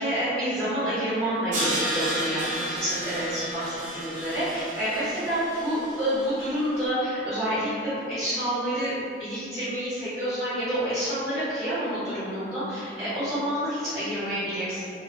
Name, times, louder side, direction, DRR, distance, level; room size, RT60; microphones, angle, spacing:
voice 1, 0.0-8.9 9.2-14.8, equal, ahead, -15 dB, 1.0 m, -28 dB
Crash cymbal, 1.5-6.6, right 1 dB, 45° right, 0.6 m, -32 dB
2.7 x 2.4 x 3.0 m, 2.5 s
head